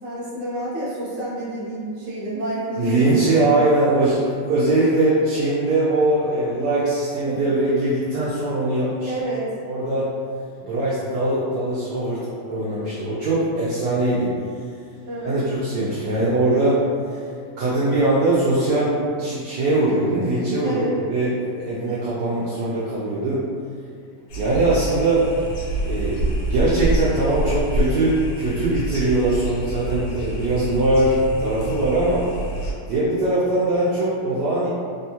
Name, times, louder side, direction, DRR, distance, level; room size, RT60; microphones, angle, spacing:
voice 1, 0.0-3.3 7.3-7.4 9.0-9.5 15.0-15.4 20.6-20.9 21.7-22.0 27.3-27.4, right 1 dB, 45° right, -9 dB, 1.1 m, -29 dB
voice 2, 2.8-9.1 9.6-10.1 10.6-14.3 15.2-16.8 17.1-17.2 17.6-23.4 24.4-25.3 25.8-26.2 26.5-32.3 32.9-34.7, right 2 dB, 70° right, -9 dB, 1.1 m, -21 dB
sound 1, 24.3-32.7, right 1 dB, 75° left, 1.4 m, -27 dB
3.5 x 2.2 x 2.8 m, 2.2 s
omnidirectional pair, 2.0 m